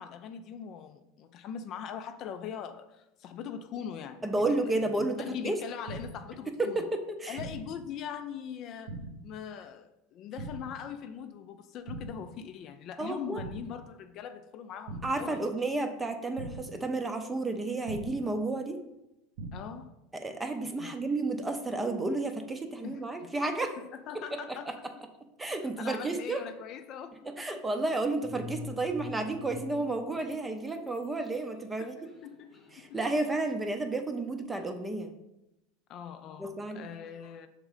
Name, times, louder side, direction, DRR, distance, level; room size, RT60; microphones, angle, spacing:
voice 1, 0.0-6.9 7.3-9.0 9.2-15.5 19.5-19.9 20.8-21.0 22.8-23.3 23.8-24.9 25.8-27.6 31.8-31.9 32.2-33.0 35.9-37.5, left 8 dB, 40° left, 0.4 m, -42 dB
voice 2, 4.2-5.6 6.6-7.4 13.0-13.4 15.0-18.8 20.1-23.8 25.4-26.4 27.4-32.0 32.7-35.1 36.4-36.8, right 2 dB, 10° right, 0.6 m, -31 dB
sound 1, 5.9-6.3 7.4-7.8 8.9-9.3 10.4-10.8 11.9-12.3 13.4-13.8 14.9-15.3 16.4-16.8 17.9-18.3 19.4-19.8, right 2 dB, 70° right, 0.8 m, -41 dB
sound 2, 28.2-30.4 30.7-34.1, left 4 dB, 10° left, 0.9 m, -46 dB
6.2 x 3.7 x 4.9 m
supercardioid pair, 140°, 0 cm